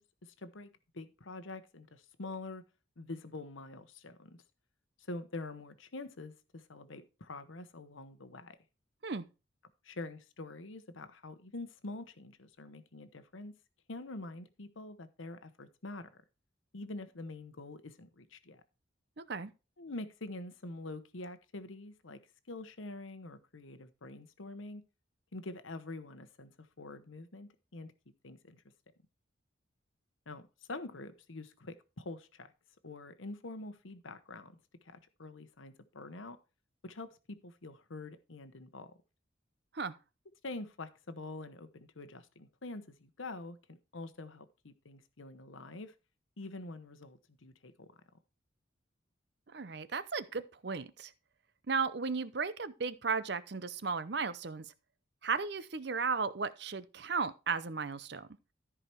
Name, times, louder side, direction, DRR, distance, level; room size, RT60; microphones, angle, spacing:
voice 1, 0.0-2.6 3.0-4.4 5.1-8.6 9.8-13.5 13.9-16.1 16.7-18.6 19.8-22.2 22.5-24.8 25.3-27.9 28.2-28.6 30.3-30.4 30.7-32.5 32.8-36.4 36.8-37.2 37.4-38.9 40.4-45.9 46.4-47.9, left 2 dB, 75° left, 1.0 m, -46 dB
voice 2, 19.2-19.5 39.7-39.9 49.5-51.1 51.7-54.7 55.2-58.3, right 5 dB, 55° right, 0.7 m, -35 dB
13.5 x 4.9 x 4.5 m
head